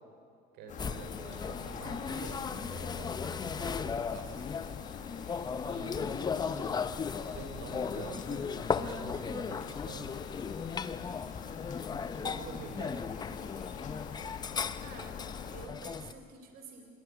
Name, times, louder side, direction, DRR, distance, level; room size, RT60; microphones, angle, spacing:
voice 1, 0.5-4.5 5.7-6.6 7.2-10.3 12.2-13.0, right 4 dB, 85° right, 5 dB, 4.5 m, -47 dB
sound 1, 0.7-15.7, left 7 dB, 45° left, 1.7 m, -45 dB
sound 2, 0.8-16.1, left 6 dB, 25° left, 0.8 m, -37 dB
voice 2, 13.1-13.7 14.8-15.2 15.5-16.9, right 4 dB, 60° right, 4 dB, 4.0 m, -50 dB
26.0 x 20.0 x 9.8 m, 2.6 s
cardioid pair, 150°, 17 cm